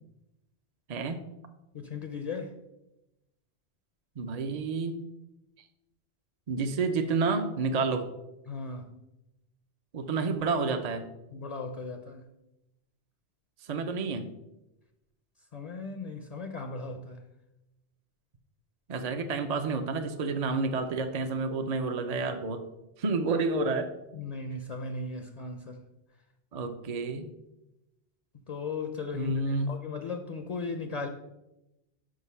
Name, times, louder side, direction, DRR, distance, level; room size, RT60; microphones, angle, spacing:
voice 1, 0.9-1.3 4.2-5.0 6.5-8.1 9.9-11.0 13.6-14.3 18.9-22.6 23.0-23.9 26.5-27.3 29.1-29.7, right 4 dB, 45° right, 0.6 m, -29 dB
voice 2, 1.7-2.6 8.5-8.9 11.3-12.3 15.5-17.2 24.1-25.8 28.3-31.1, left 3 dB, 45° left, 0.6 m, -37 dB
6.4 x 5.3 x 5.5 m
omnidirectional pair, 1.1 m